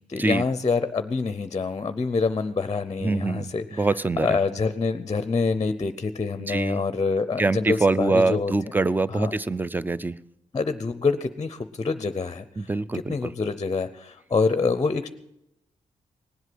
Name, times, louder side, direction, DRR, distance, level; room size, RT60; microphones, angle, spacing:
voice 1, 0.1-3.9 4.2-8.5 9.1-9.4 10.5-15.1, left 4 dB, 30° left, 12 dB, 0.6 m, -26 dB
voice 2, 3.0-4.4 6.5-6.8 7.4-10.2 12.6-13.3, right 3 dB, 15° right, 17 dB, 0.5 m, -24 dB
19.0 x 8.1 x 7.7 m, 0.83 s
cardioid pair, 95°, 13 cm